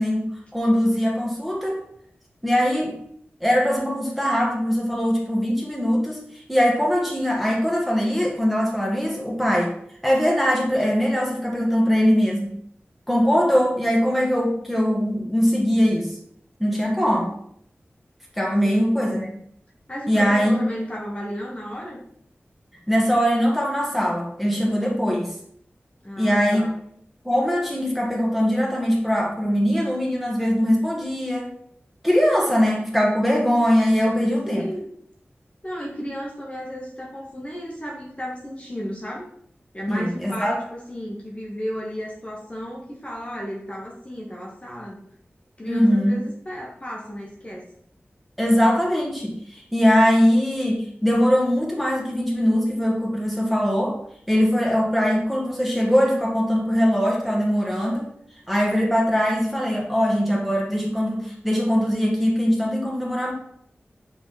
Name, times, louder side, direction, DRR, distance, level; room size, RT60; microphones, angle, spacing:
voice 1, 0.0-1.8 2.4-3.0 3.4-9.7 10.0-12.6 13.1-16.1 16.6-17.3 18.4-19.3 20.1-20.6 22.9-25.3 26.2-26.7 27.2-31.5 32.0-34.7 39.9-40.6 45.7-46.2 48.4-54.0 54.3-58.1 58.5-63.3, equal, ahead, -2 dB, 1.7 m, -21 dB
voice 2, 19.9-22.0 26.0-26.7 34.5-34.9 35.6-39.3 39.7-45.1 45.6-47.7, equal, 30° left, -3 dB, 1.4 m, -34 dB
5.8 x 4.0 x 4.2 m, 0.68 s
wide cardioid pair, 55°, 4 cm